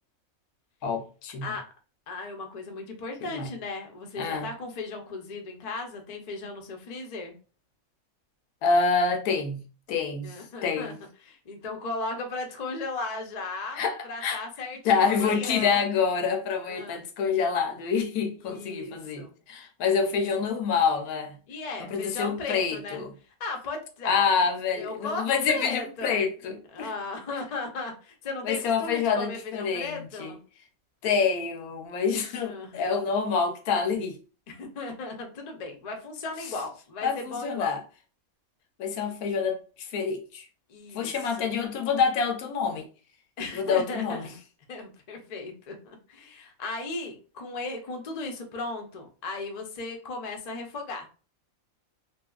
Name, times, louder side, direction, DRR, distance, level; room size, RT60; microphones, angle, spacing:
voice 1, 0.8-1.5 3.2-3.5 4.2-4.5 8.6-10.4 10.6-11.0 13.7-14.4 14.8-21.4 21.9-23.1 24.0-26.9 28.4-30.3 31.0-34.2 37.0-37.8 38.8-40.4 40.9-42.9 43.5-44.3, left 5 dB, 90° left, 1.1 m, -27 dB
voice 2, 2.1-7.3 10.2-10.9 11.2-15.9 16.6-17.0 18.4-19.3 19.9-20.2 21.5-23.0 23.4-24.3 24.7-26.2 26.7-30.4 32.4-33.0 34.5-37.7 40.7-41.5 43.4-44.4 44.7-51.1, left 3 dB, 55° left, 0.4 m, -36 dB
2.7 x 2.7 x 2.3 m
omnidirectional pair, 1.5 m